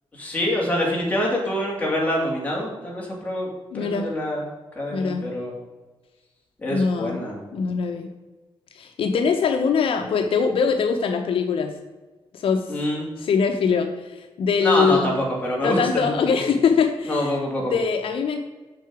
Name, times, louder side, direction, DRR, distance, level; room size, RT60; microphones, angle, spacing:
voice 1, 0.2-3.5 3.7-4.4 4.7-5.5 6.6-7.4 12.7-13.1 14.6-16.4 17.1-17.8, left 1 dB, 15° left, -3 dB, 2.5 m, -25 dB
voice 2, 3.7-4.1 4.9-5.2 6.7-7.2 7.5-8.1 8.7-11.7 12.3-12.7 13.2-15.2 15.6-17.3 17.7-18.4, left 5 dB, 70° left, 5 dB, 0.7 m, -22 dB
6.7 x 6.3 x 4.8 m, 1.2 s
wide cardioid pair, 145°, 10 cm